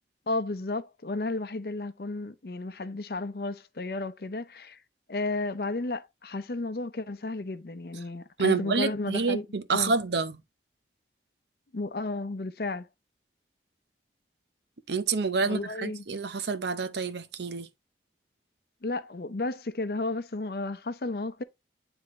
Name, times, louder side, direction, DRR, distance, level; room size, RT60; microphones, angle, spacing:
voice 1, 0.3-4.8 5.1-9.5 9.7-9.9 11.7-12.9 15.4-16.0 18.8-21.4, left 2 dB, 60° left, 0.6 m, -33 dB
voice 2, 8.4-10.4 14.9-17.7, right 4 dB, 75° right, 0.7 m, -28 dB
9.6 x 3.5 x 3.0 m
head